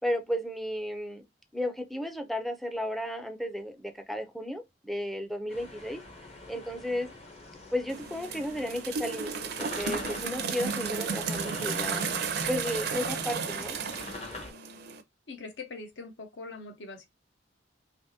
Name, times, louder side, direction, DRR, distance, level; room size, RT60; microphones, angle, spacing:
voice 1, 0.0-1.2 1.5-6.0 6.5-7.1 7.7-9.3 9.6-12.1 12.5-13.8, left 1 dB, ahead, 0.4 m, -33 dB
sound 1, 5.5-14.5, left 2 dB, 35° left, 0.8 m, -44 dB
sound 2, 7.9-15.0, right 5 dB, 60° right, 0.5 m, -33 dB
voice 2, 15.3-17.1, left 3 dB, 70° left, 0.8 m, -42 dB
3.4 x 2.9 x 2.7 m
head